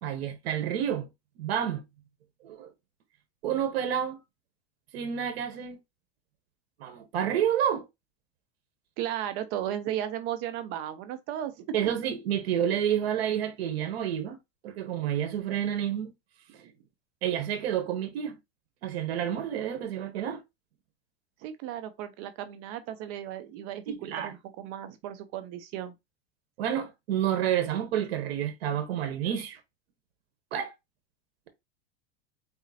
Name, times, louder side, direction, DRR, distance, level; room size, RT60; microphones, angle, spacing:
voice 1, 0.0-1.1 1.4-1.8 2.4-2.7 3.4-4.2 4.9-5.8 6.8-7.9 11.7-14.4 14.6-16.1 16.5-16.6 17.2-18.4 18.8-20.4 23.9-24.3 26.6-29.6 30.5-30.7, right 9 dB, 80° right, 1.1 m, -29 dB
voice 2, 9.0-11.6 16.6-16.7 21.4-25.9, right 11 dB, 50° right, 0.8 m, -35 dB
4.2 x 3.6 x 2.7 m
supercardioid pair, 135°, 31 cm